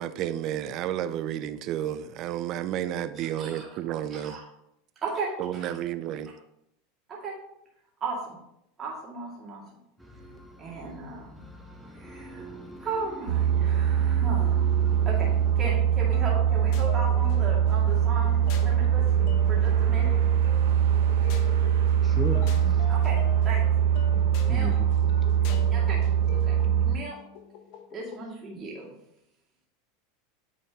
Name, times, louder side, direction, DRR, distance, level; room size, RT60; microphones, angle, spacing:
voice 1, 0.0-4.4 5.4-6.3, right 11 dB, 50° right, 0.5 m, -31 dB
voice 2, 3.2-3.8 4.2-4.4 5.0-5.7 7.1-7.3 8.0-8.4 8.8-9.6 10.6-11.4 11.9-12.4 12.8-14.7 15.1-15.3 15.6-19.0 19.5-20.1 22.9-23.2 23.4-23.6 24.4-24.7 25.7-26.0 26.4-26.5 26.8-27.2 27.9-29.0, right 3 dB, 30° right, 2.1 m, -36 dB
sound 1, 10.0-15.5, right 2 dB, ahead, 1.2 m, -45 dB
sound 2, 13.3-27.0, right 9 dB, 80° right, 0.9 m, -23 dB
sound 3, 16.1-28.3, left 7 dB, 60° left, 0.9 m, -44 dB
voice 3, 22.0-22.9 24.1-25.1 25.4-25.5 26.3-26.4, left 3 dB, 15° left, 0.6 m, -36 dB
8.7 x 4.2 x 3.6 m
hypercardioid pair, 105°, 0 cm